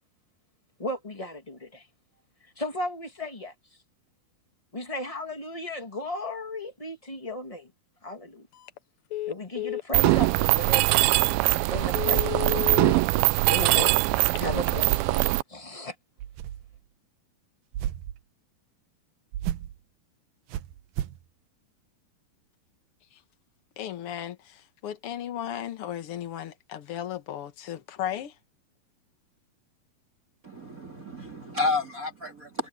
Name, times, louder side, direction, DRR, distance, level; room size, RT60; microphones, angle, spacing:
voice 1, 0.8-1.9 2.5-3.5 4.7-7.7 8.0-8.5 9.3-11.2 11.5-14.0 14.4-15.9, left 1 dB, 15° left, 1.2 m, -35 dB
Telephone, 8.5-8.8 9.1-10.2 10.7-10.8 11.3-11.4 11.8-12.9 14.1-14.8, left 15 dB, 75° left, 1.6 m, -33 dB
Mechanisms, 9.9-15.4, right 20 dB, 90° right, 2.5 m, -22 dB
sound 1, 16.2-16.8 17.7-18.2 19.3-19.8 20.5-21.2, right 12 dB, 75° right, 2.4 m, -33 dB
voice 2, 23.8-28.3, left 10 dB, 60° left, 1.5 m, -35 dB
voice 3, 30.4-32.7, left 3 dB, 30° right, 1.9 m, -31 dB
omnidirectional pair, 4.2 m